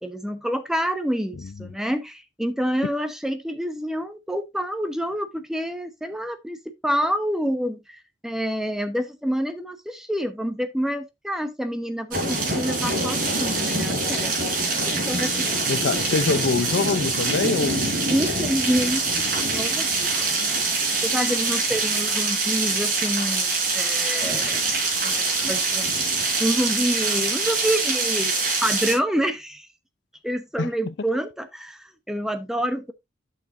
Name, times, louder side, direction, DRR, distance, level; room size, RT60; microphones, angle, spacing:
voice 1, 0.0-14.3 14.7-15.4 18.1-19.1 19.4-20.6 21.0-24.6 25.0-26.0 26.4-28.3 28.6-29.7 30.2-32.9, equal, 5° right, 0.9 m, -27 dB
sound 1, 12.1-28.9, right 3 dB, 50° right, 4.1 m, -24 dB
voice 2, 15.7-18.0 30.6-30.7, left 4 dB, 75° left, 0.5 m, -24 dB
11.0 x 6.6 x 2.5 m
head